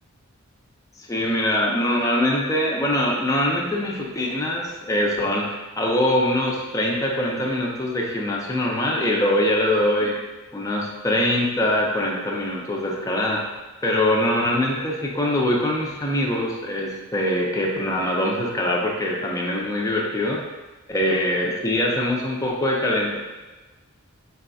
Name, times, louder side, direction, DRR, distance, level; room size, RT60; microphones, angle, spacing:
voice 1, 1.0-10.1 10.5-13.4 13.8-20.4 20.9-23.2, left 1 dB, 15° left, -2 dB, 0.5 m, -23 dB
4.1 x 3.9 x 2.3 m, 1.2 s
head